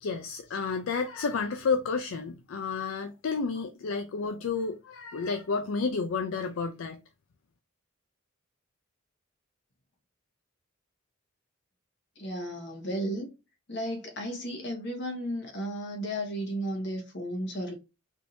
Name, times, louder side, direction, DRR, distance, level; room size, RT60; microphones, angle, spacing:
voice 1, 0.0-7.0, left 4 dB, 75° left, 0.4 m, -31 dB
voice 2, 12.2-13.3 13.7-17.7, equal, 55° left, 1.2 m, -34 dB
3.6 x 2.6 x 2.7 m
head